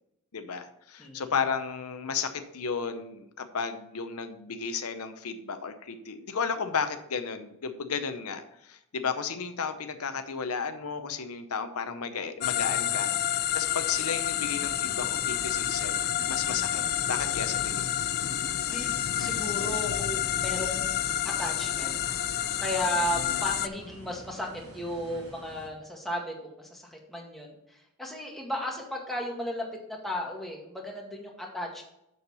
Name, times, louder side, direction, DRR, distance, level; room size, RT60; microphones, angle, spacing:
voice 1, 0.3-16.8 17.1-18.0 23.2-23.4, left 6 dB, 85° left, 8 dB, 0.8 m, -33 dB
voice 2, 1.0-1.3 18.7-22.0 22.6-24.5 24.7-31.8, equal, ahead, -2 dB, 1.8 m, -35 dB
sound 1, 12.4-23.7, left 11 dB, 45° left, 0.4 m, -29 dB
sound 2, 14.2-25.7, equal, 80° right, 3.4 m, -49 dB
6.7 x 6.5 x 5.5 m, 0.79 s
head